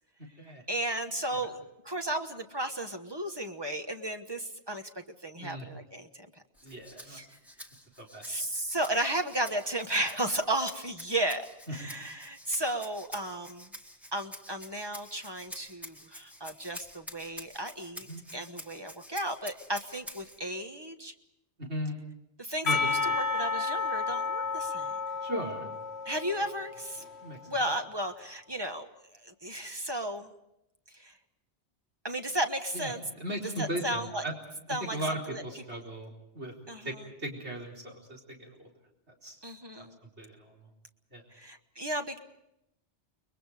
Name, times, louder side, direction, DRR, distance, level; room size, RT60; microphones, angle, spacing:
voice 1, 0.7-6.3 7.0-7.2 8.2-13.7 14.1-21.1 22.4-24.9 26.0-27.0 27.5-28.9 29.2-30.3 30.9-31.1 32.0-33.0 33.6-34.2 34.7-35.0 35.3-35.4 36.7-37.0 39.4-40.0 41.3-42.2, right 1 dB, 20° right, 6 dB, 1.3 m, -34 dB
Rattle (instrument), 6.5-20.4, equal, ahead, 1.7 m, -48 dB
voice 2, 6.6-7.2 8.0-8.3 11.8-11.9 18.1-18.2 21.6-22.0 22.6-22.8 23.1-23.2 25.2-25.7 27.2-27.6 32.7-34.3 34.8-36.5 36.8-36.9 37.2-38.7 39.1-39.4 39.8-39.9 40.2-40.6 41.1-41.2, right 1 dB, 75° right, -1 dB, 4.5 m, -37 dB
Percussion, 22.7-27.5, left 4 dB, 70° left, 1.3 m, -32 dB
30.0 x 22.0 x 5.0 m, 0.84 s
omnidirectional pair, 1.2 m